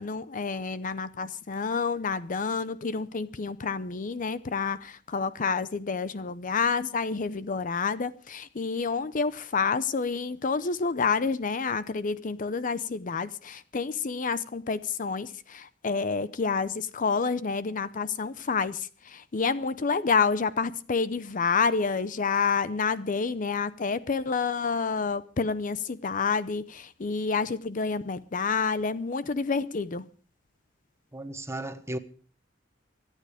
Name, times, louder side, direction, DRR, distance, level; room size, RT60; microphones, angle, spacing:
voice 1, 0.0-30.0, left 5 dB, 45° left, 0.6 m, -29 dB
voice 2, 31.1-32.0, right 1 dB, 15° right, 1.2 m, -35 dB
24.5 x 9.1 x 5.0 m
head